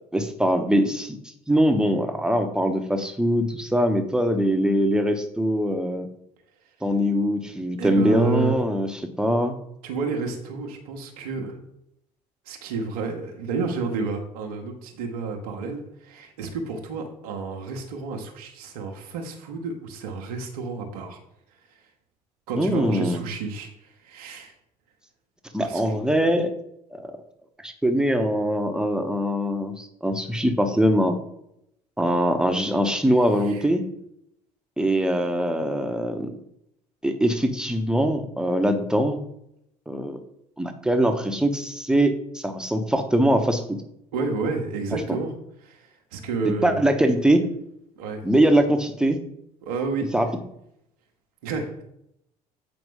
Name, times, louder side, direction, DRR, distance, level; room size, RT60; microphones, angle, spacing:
voice 1, 0.1-1.2 1.5-6.1 6.8-8.9 9.2-9.5 22.6-23.2 25.5-26.5 26.9-27.2 27.6-31.1 32.0-33.8 34.8-36.3 37.0-39.2 39.9-40.2 40.6-43.8 46.6-47.4 48.2-49.2 50.1-50.3, equal, 5° right, 6 dB, 1.0 m, -22 dB
voice 2, 7.8-8.6 9.8-11.6 12.5-21.2 22.5-24.5 25.6-26.0 33.4-33.6 44.1-45.3 45.6-46.8 48.0-48.2 49.6-50.1 51.4-51.8, right 4 dB, 70° right, 2 dB, 1.0 m, -30 dB
7.8 x 4.9 x 3.8 m, 0.78 s
figure-of-eight pair, 55°, 21 cm